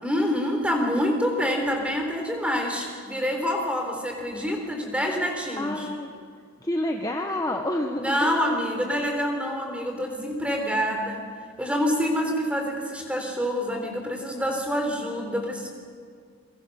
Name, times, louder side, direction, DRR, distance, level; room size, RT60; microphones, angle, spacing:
voice 1, 0.0-5.9 8.0-11.2 11.6-15.7, equal, 5° right, 2 dB, 3.8 m, -26 dB
voice 2, 5.6-6.1 6.6-8.5 10.7-10.8, left 1 dB, 15° left, 3 dB, 1.1 m, -29 dB
28.5 x 24.0 x 6.9 m, 2.1 s
head